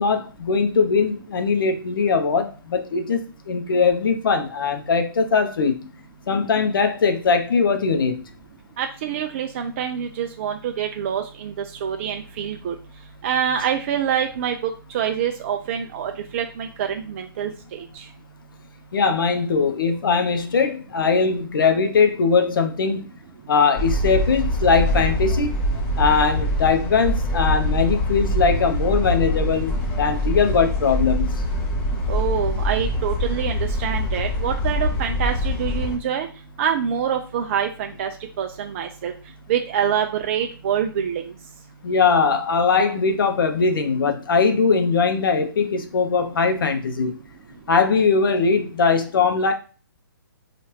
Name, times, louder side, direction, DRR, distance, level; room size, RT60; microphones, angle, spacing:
voice 1, 0.0-3.2 3.5-5.9 6.3-8.2 18.9-23.1 23.5-25.5 26.0-31.3 41.8-47.2 47.7-49.5, left 5 dB, 70° left, 0.6 m, -20 dB
voice 2, 8.8-11.5 11.8-12.7 13.2-18.0 32.1-36.3 36.6-38.1 38.4-39.1 39.5-41.3, right 8 dB, 35° right, 0.4 m, -26 dB
sound 1, 23.8-36.0, left 1 dB, 20° left, 0.6 m, -24 dB
3.0 x 2.4 x 3.1 m
hypercardioid pair, 145°, 12 cm